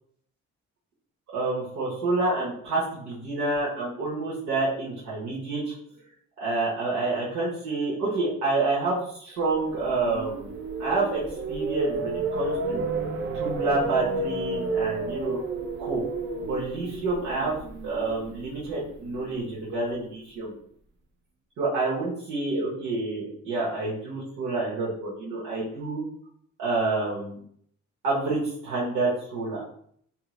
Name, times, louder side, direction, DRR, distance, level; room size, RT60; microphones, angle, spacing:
voice 1, 1.3-2.8 3.2-5.7 6.4-10.5 10.8-11.2 11.5-12.8 13.3-15.4 15.8-16.0 16.4-17.6 17.8-20.5 21.6-26.0 26.6-27.4 28.0-29.6, right 3 dB, 85° right, -7 dB, 1.0 m, -28 dB
sound 1, 9.6-19.7, right 3 dB, 40° right, 0.5 m, -32 dB
3.0 x 2.7 x 2.3 m, 0.63 s
cardioid pair, 90°, 30 cm